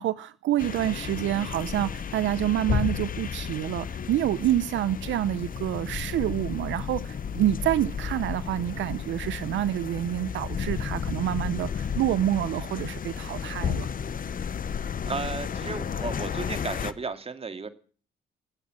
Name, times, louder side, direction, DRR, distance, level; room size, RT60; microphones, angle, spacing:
voice 1, 0.0-13.9, right 13 dB, 75° right, 0.7 m, -27 dB
sound 1, 0.6-16.9, left 7 dB, 45° left, 1.1 m, -33 dB
voice 2, 15.1-17.7, right 4 dB, 30° right, 2.2 m, -34 dB
20.5 x 8.5 x 7.6 m
cardioid pair, 90°, 20 cm